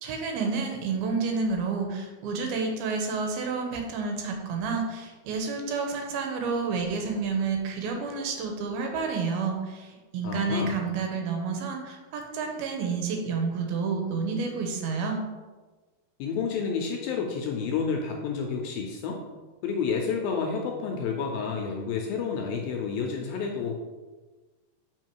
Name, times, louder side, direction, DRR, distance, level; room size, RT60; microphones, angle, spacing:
voice 1, 0.0-15.2, right 4 dB, 75° right, 3 dB, 2.5 m, -30 dB
voice 2, 10.2-10.8 16.2-19.2 19.6-23.8, left 5 dB, 80° left, 2 dB, 2.1 m, -30 dB
6.4 x 5.4 x 4.5 m, 1.3 s
omnidirectional pair, 4.9 m